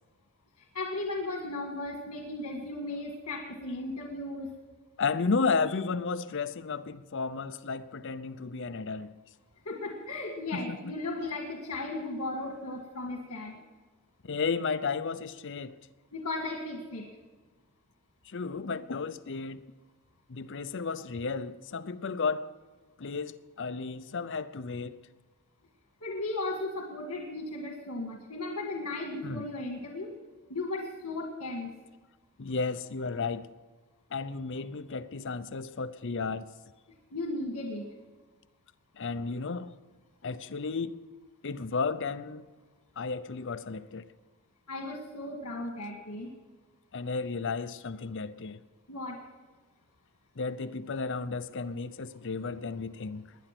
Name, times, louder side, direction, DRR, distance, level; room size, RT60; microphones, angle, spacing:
voice 1, 0.7-4.5 9.7-13.6 16.1-17.0 26.0-30.1 30.5-31.7 37.1-37.9 44.7-46.3 48.9-49.2, left 2 dB, 80° left, 1.9 m, -36 dB
voice 2, 5.0-9.1 10.5-10.8 14.2-15.8 18.3-19.6 20.3-22.5 23.0-25.0 29.2-29.5 32.4-33.5 34.1-36.5 39.0-39.7 40.2-41.0 41.4-42.5 43.0-44.0 46.9-48.6 50.4-53.3, left 4 dB, 60° left, 0.6 m, -33 dB
20.5 x 10.0 x 6.0 m
head